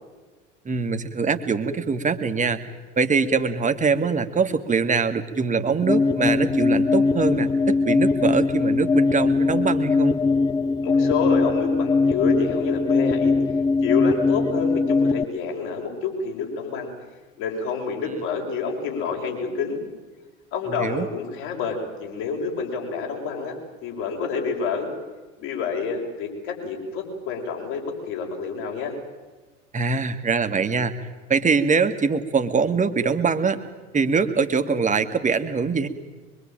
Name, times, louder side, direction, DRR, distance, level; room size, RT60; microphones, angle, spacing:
voice 1, 0.7-2.6 3.0-10.2 20.7-21.1 29.7-30.9 31.3-33.6 33.9-35.9, right 5 dB, 20° right, 8 dB, 2.0 m, -23 dB
sound 1, 5.8-15.2, left 4 dB, 10° left, 0.8 m, -21 dB
voice 2, 10.8-13.3 13.8-16.9 17.4-19.8 20.5-23.6 23.8-24.9 25.4-28.9, left 5 dB, 55° left, 1 dB, 6.3 m, -28 dB
24.0 x 23.0 x 9.0 m, 1.3 s
figure-of-eight pair, 70°, 37 cm